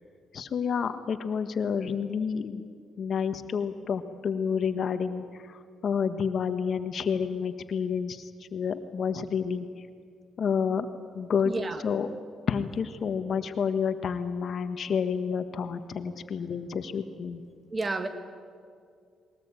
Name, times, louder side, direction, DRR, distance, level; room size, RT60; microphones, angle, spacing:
voice 1, 0.3-2.6 3.0-9.7 10.4-10.9 11.1-11.5 11.8-12.1 12.5-17.4, left 6 dB, 55° left, 9 dB, 1.5 m, -29 dB
voice 2, 11.5-11.8 17.7-18.1, right 3 dB, 30° right, 9 dB, 1.9 m, -30 dB
21.5 x 18.5 x 9.0 m, 2.2 s
cardioid pair, 90°, 0 cm